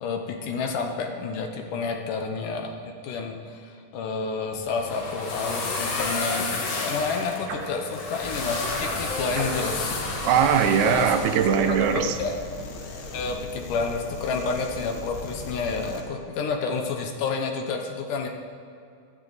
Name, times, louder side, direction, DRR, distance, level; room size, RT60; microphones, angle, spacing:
voice 1, 0.0-10.0 10.8-11.1 11.6-12.4 13.1-18.3, left 4 dB, 70° left, 3 dB, 2.3 m, -30 dB
sound 1, 4.5-11.4, left 3 dB, 50° left, 2.3 m, -31 dB
sound 2, 7.5-7.8 9.3-9.9 11.6-12.0, right 3 dB, 60° right, 2.8 m, -35 dB
sound 3, 8.2-16.0, left 3 dB, 85° left, 3.6 m, -39 dB
voice 2, 10.3-12.2, right 8 dB, 85° right, 8 dB, 2.9 m, -21 dB
17.5 x 12.5 x 4.1 m, 2.4 s
omnidirectional pair, 4.5 m